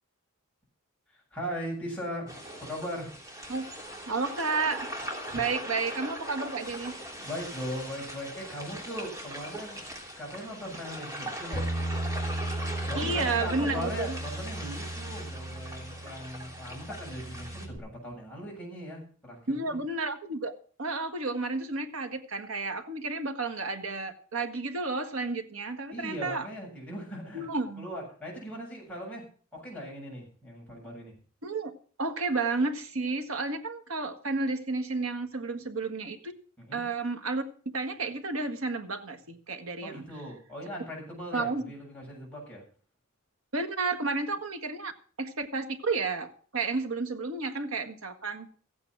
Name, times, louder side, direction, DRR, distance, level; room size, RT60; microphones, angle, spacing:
voice 1, 1.1-3.1 5.2-5.4 7.2-9.8 10.2-11.7 12.9-19.8 25.9-27.5 27.8-29.2 29.5-31.1 36.6-36.9 39.8-42.6, equal, 5° left, -3 dB, 7.4 m, -39 dB
sound 1, 2.3-17.7, equal, 15° right, 3.0 m, -40 dB
voice 2, 4.1-4.9 5.3-7.0 12.9-14.2 19.5-20.5 20.8-26.5 27.3-27.9 31.4-31.7 32.0-36.3 36.7-37.4 37.7-40.0 41.3-41.6 43.5-44.9 45.2-48.5, right 3 dB, 80° right, 7 dB, 1.6 m, -31 dB
Bass guitar, 11.5-17.8, right 1 dB, 40° left, 5.0 m, -36 dB
15.0 x 8.8 x 6.2 m, 0.43 s
head